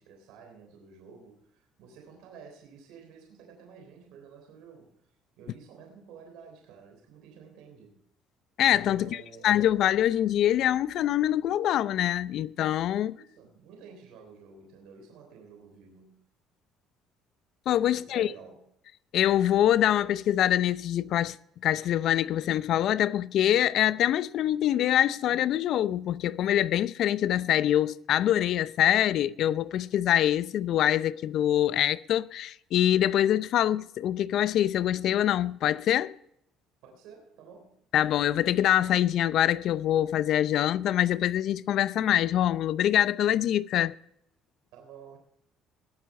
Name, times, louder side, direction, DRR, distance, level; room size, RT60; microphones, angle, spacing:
voice 1, 0.0-8.0 8.9-9.6 13.1-16.2 17.9-18.7 36.8-37.8 44.7-45.2, right 6 dB, 80° right, 3.5 m, -51 dB
voice 2, 8.6-13.2 17.7-18.3 19.1-21.4 21.6-36.1 37.9-43.9, left 11 dB, 65° left, 0.5 m, -24 dB
20.5 x 7.7 x 4.2 m
supercardioid pair, 80°, 0 cm